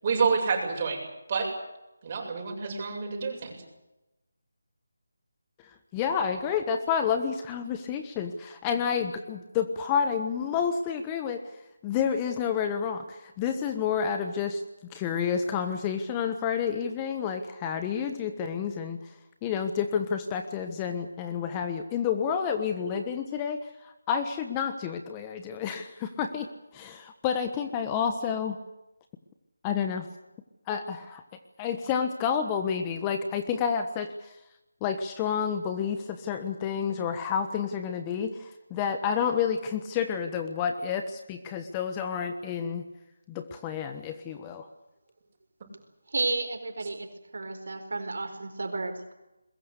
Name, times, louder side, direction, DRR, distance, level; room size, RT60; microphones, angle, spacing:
voice 1, 0.0-1.0 1.3-1.5 2.0-3.5, right 5 dB, 35° right, 1 dB, 7.9 m, -28 dB
voice 2, 5.9-11.4 11.8-14.6 14.9-19.0 19.4-26.5 26.7-28.6 29.6-30.1 30.7-31.2 31.6-34.3 34.8-42.8 43.3-44.7, left 7 dB, 15° left, 7 dB, 1.3 m, -29 dB
voice 3, 46.1-47.1 47.3-49.1, right 3 dB, 65° right, 7 dB, 4.5 m, -32 dB
22.0 x 21.5 x 8.2 m, 0.94 s
figure-of-eight pair, 165°, 0 cm